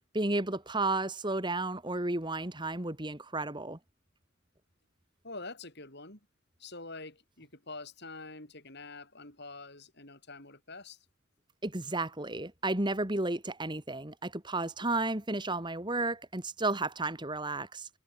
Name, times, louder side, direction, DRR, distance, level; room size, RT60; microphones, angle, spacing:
voice 1, 0.1-3.8 11.6-17.9, right 2 dB, 20° right, 2.1 m, -32 dB
voice 2, 5.2-6.2 6.6-11.0, left 3 dB, 50° left, 6.3 m, -46 dB
head